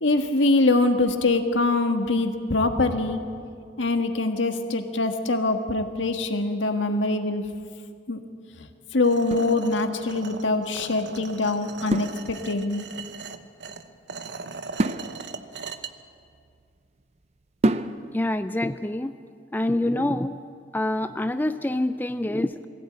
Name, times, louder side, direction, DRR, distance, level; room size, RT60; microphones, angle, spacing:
voice 1, 0.0-3.2 3.8-7.5 8.1-8.2 8.6-8.7 8.9-12.8, left 2 dB, 85° left, 5 dB, 1.6 m, -23 dB
sound 1, 9.0-15.9, right 4 dB, 65° right, 1.0 m, -39 dB
sound 2, 9.2-10.3 11.9-12.8 14.8-16.8 17.6-18.4, right 1 dB, 35° right, 0.6 m, -29 dB
voice 2, 18.1-19.2 19.5-20.4 20.7-22.7, left 1 dB, 10° left, 10 dB, 0.5 m, -26 dB
21.5 x 16.0 x 8.8 m, 2.2 s
head